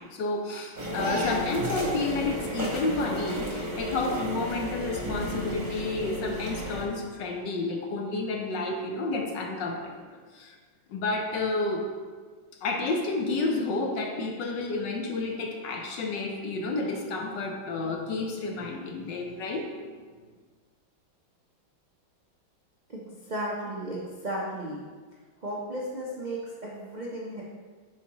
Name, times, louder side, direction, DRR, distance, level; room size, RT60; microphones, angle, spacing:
voice 1, 0.0-10.6 10.9-11.9 12.6-19.7, left 3 dB, 70° left, 2 dB, 1.4 m, -30 dB
sound 1, 0.8-6.9, right 1 dB, 30° right, 0.9 m, -33 dB
voice 2, 22.9-24.8 25.4-27.4, right 1 dB, 75° right, -5 dB, 0.4 m, -34 dB
8.2 x 4.9 x 3.0 m, 1.5 s
omnidirectional pair, 2.2 m